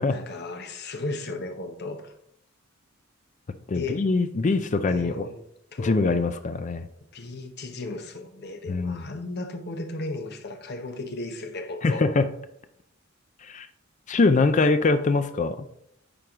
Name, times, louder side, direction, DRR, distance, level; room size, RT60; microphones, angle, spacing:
voice 1, 0.1-2.1 3.7-4.0 4.8-5.4 5.7-6.0 7.1-12.1, left 2 dB, 55° left, 0.9 m, -35 dB
voice 2, 3.7-5.3 5.8-6.9 8.7-9.1 11.8-12.3 13.4-13.7 14.1-15.7, left 3 dB, 35° left, 0.4 m, -23 dB
8.8 x 4.6 x 3.6 m
head